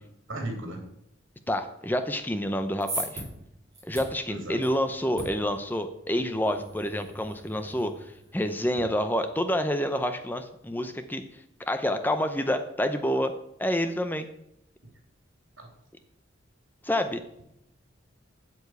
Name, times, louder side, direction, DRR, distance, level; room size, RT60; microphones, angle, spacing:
voice 1, 0.3-0.8 4.3-4.6 15.6-15.7, right 1 dB, 85° right, 2 dB, 3.3 m, -35 dB
voice 2, 1.5-3.2 3.8-11.2 11.6-13.3 13.6-14.3 16.8-17.2, equal, 10° left, 9 dB, 0.6 m, -28 dB
sound 1, 2.5-8.8, right 1 dB, 20° right, 4.9 m, -41 dB
8.1 x 7.0 x 8.2 m, 0.79 s
head